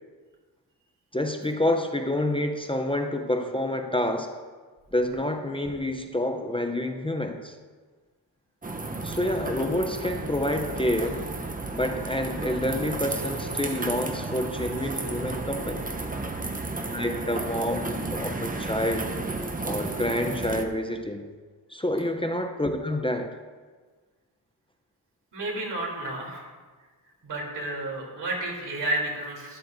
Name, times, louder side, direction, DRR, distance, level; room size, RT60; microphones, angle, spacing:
voice 1, 1.1-4.3 4.9-7.5 9.0-11.3 11.7-15.9 16.9-19.1 19.6-21.3 21.7-23.4, left 1 dB, 15° left, 5 dB, 0.7 m, -28 dB
sound 1, 8.6-20.6, right 3 dB, 20° right, 0.8 m, -33 dB
voice 2, 25.3-26.5 27.2-29.6, right 2 dB, 75° right, -2 dB, 3.4 m, -31 dB
12.5 x 12.0 x 2.7 m, 1.4 s
wide cardioid pair, 100°, 42 cm